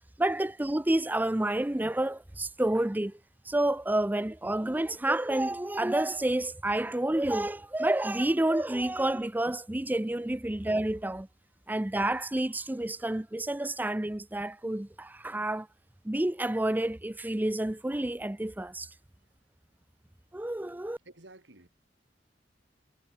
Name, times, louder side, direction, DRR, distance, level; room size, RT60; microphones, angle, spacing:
voice 1, 0.2-3.2 3.4-11.3 11.7-15.7 16.0-18.9 20.3-21.0, right 1 dB, 10° right, 0.5 m, -29 dB
voice 2, 21.0-21.7, right 2 dB, 85° right, 3.7 m, -53 dB
head